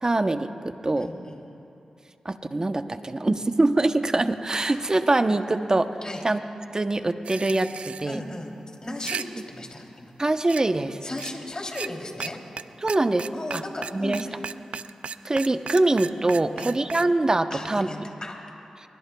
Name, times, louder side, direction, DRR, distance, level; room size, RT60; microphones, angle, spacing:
voice 1, 0.0-1.1 2.2-5.9 6.2-6.4 6.7-8.2 10.2-11.0 12.8-13.6 13.9-14.2 15.2-17.9, right 2 dB, 35° right, 9 dB, 0.8 m, -24 dB
voice 2, 1.0-1.4 6.0-6.2 8.1-8.5 8.8-10.1 11.0-12.4 13.3-14.4 16.5-16.8 17.5-18.4, left 1 dB, 40° left, 0 dB, 3.1 m, -36 dB
sound 1, 4.5-5.7, right 2 dB, 55° right, 2.7 m, -45 dB
sound 2, 7.2-8.0 8.8-9.2 10.5-10.6 11.2-11.3 11.7-11.9 12.2-12.3 12.6-12.7 12.9-17.1, right 6 dB, 75° right, 0.3 m, -34 dB
24.0 x 22.5 x 2.3 m, 2.8 s
cardioid pair, 50°, 2 cm